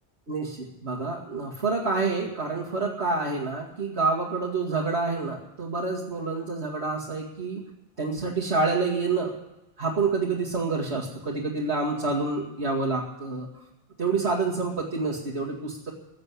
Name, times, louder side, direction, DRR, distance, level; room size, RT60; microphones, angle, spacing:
voice 1, 0.3-7.6 8.0-9.3 9.8-13.5 14.0-15.9, right 3 dB, 85° right, -4 dB, 2.5 m, -28 dB
15.5 x 7.8 x 9.8 m, 0.91 s
omnidirectional pair, 1.1 m